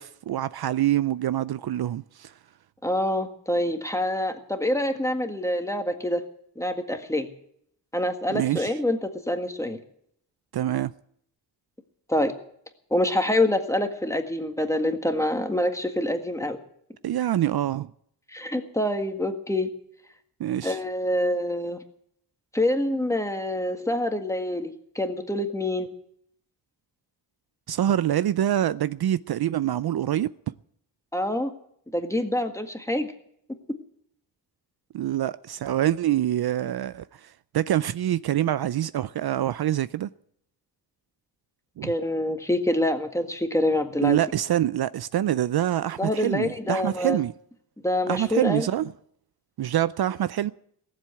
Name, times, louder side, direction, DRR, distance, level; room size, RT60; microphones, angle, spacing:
voice 1, 0.0-2.3 8.3-8.8 10.5-10.9 17.0-17.9 20.4-20.8 27.7-30.3 34.9-40.1 41.8-41.9 44.0-47.3 48.1-48.9 49.6-50.5, right 12 dB, 65° right, 0.5 m, -25 dB
voice 2, 2.8-6.2 6.6-7.3 7.9-9.8 12.1-12.3 12.9-16.6 18.3-19.7 20.6-21.8 22.5-25.9 31.1-31.5 31.9-33.1 41.8-44.2 46.0-47.2 47.8-48.7, left 1 dB, 5° left, 1.8 m, -26 dB
18.0 x 7.7 x 9.1 m
wide cardioid pair, 105°, 42 cm